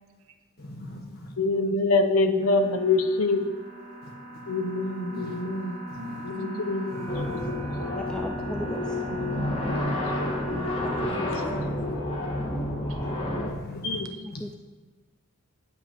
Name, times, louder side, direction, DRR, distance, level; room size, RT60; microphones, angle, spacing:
voice 1, 0.6-1.3 4.0-4.4 5.1-5.4 5.9-6.2 6.9-7.6 13.5-14.0 14.3-14.5, left 1 dB, 45° left, 1 dB, 1.5 m, -40 dB
voice 2, 1.4-3.4 4.5-5.8 6.2-7.6 9.7-9.8 10.3-10.6 11.1-11.2 11.9-12.0 13.9-14.0, left 3 dB, 75° left, 8 dB, 0.8 m, -26 dB
sound 1, 2.4-11.1, equal, 45° right, 2.5 m, -39 dB
voice 3, 5.9-7.0 9.1-10.8 11.3-11.5 12.9-13.0, right 1 dB, 65° right, 6 dB, 0.9 m, -42 dB
sound 2, 7.1-13.5, left 1 dB, 25° left, 1.5 m, -30 dB
voice 4, 7.9-9.0 11.0-11.4 14.4-14.5, left 1 dB, 5° left, 3 dB, 0.3 m, -36 dB
9.4 x 5.9 x 5.7 m, 1.3 s
head